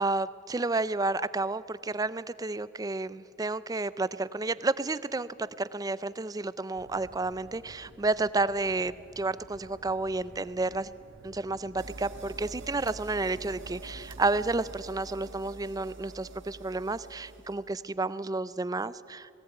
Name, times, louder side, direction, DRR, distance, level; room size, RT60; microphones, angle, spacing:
voice 1, 0.0-10.9 11.2-19.3, right 3 dB, 20° right, 17 dB, 0.5 m, -31 dB
sound 1, 6.7-14.8, right 1 dB, 90° right, 1.2 m, -53 dB
sound 2, 11.8-17.8, right 3 dB, 75° right, 1.4 m, -46 dB
19.5 x 17.0 x 9.1 m, 2.7 s
head